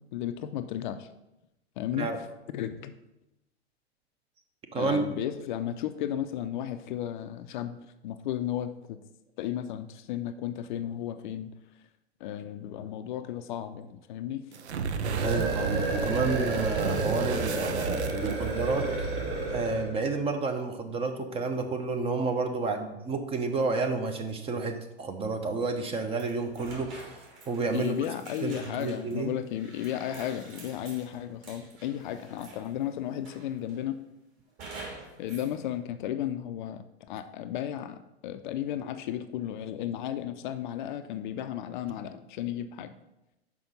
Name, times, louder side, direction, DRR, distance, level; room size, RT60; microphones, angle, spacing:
voice 1, 0.1-1.1 1.8-2.1 2.5-2.9 4.7-7.8 8.0-9.0 9.4-11.5 12.2-14.4 27.7-34.0 35.2-42.9, left 11 dB, 45° left, 10 dB, 0.5 m, -34 dB
voice 2, 4.7-5.1 15.2-19.1 19.5-27.1 27.5-27.9 28.4-29.3, right 3 dB, 20° right, 6 dB, 0.7 m, -30 dB
sound 1, 14.5-18.7, right 5 dB, 80° right, 0.7 m, -33 dB
sound 2, 14.9-20.0, right 3 dB, 55° right, 2.0 m, -31 dB
sound 3, 26.1-32.8 33.2-33.8 34.6-35.5, right 3 dB, 35° right, 2.7 m, -47 dB
5.9 x 4.9 x 5.3 m, 0.93 s
hypercardioid pair, 115°, 33 cm